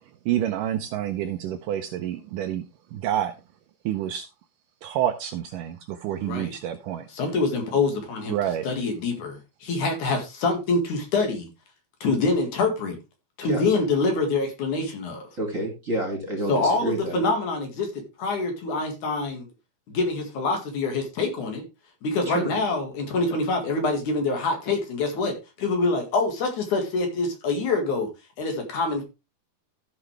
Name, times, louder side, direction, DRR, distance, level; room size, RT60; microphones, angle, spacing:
voice 1, 0.3-2.6 2.9-3.3 3.9-4.3 4.8-7.1 8.3-8.7, right 11 dB, 75° right, 2.0 m, -28 dB
voice 2, 6.2-6.5 7.1-8.4 8.6-11.5 12.0-13.0 13.4-15.3 16.5-19.4 19.9-21.6 22.0-28.1 28.4-29.0, left 3 dB, 60° left, 3.1 m, -25 dB
voice 3, 15.4-17.2 22.3-22.5, right 1 dB, 25° right, 2.1 m, -29 dB
14.5 x 6.0 x 3.3 m
omnidirectional pair, 4.3 m